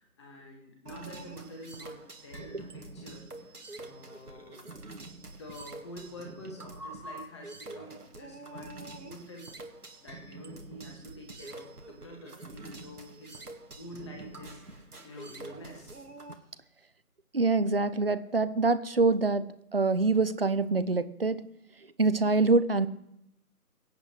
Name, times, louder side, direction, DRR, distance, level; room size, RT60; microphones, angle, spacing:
voice 1, 0.0-3.2 3.8-4.7 5.2-9.5 10.0-13.4 13.8-15.9, equal, 20° left, 1 dB, 1.9 m, -47 dB
sound 1, 0.9-16.3, right 2 dB, 85° right, 1.8 m, -46 dB
voice 2, 17.3-19.4 19.7-21.4 22.0-22.9, right 3 dB, 40° right, 14 dB, 0.5 m, -25 dB
23.0 x 8.2 x 3.2 m, 0.78 s
figure-of-eight pair, 155°, 45 cm